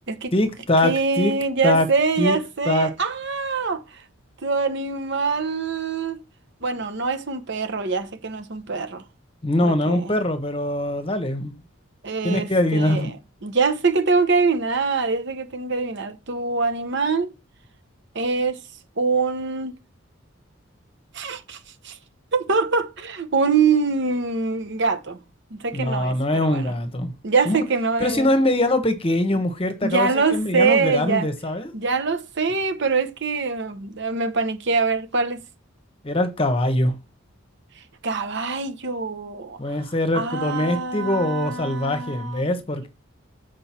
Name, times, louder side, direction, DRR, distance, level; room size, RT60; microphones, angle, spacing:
voice 1, 0.3-1.3 1.6-1.9 2.2-2.4 2.7-2.9 9.4-11.6 12.2-13.1 25.7-27.1 27.4-27.6 28.0-31.7 36.0-36.9 39.6-42.9, left 1 dB, 25° left, 1.1 m, -22 dB
voice 2, 0.8-4.0 4.4-6.2 6.6-9.0 9.6-10.1 12.0-13.1 13.4-17.3 18.1-18.6 19.0-19.8 21.1-21.6 21.8-22.0 22.3-25.2 25.5-26.7 27.2-28.3 29.8-31.3 31.7-35.4 38.0-39.8 40.1-42.5, right 4 dB, 60° right, 1.0 m, -24 dB
7.8 x 5.2 x 4.4 m
head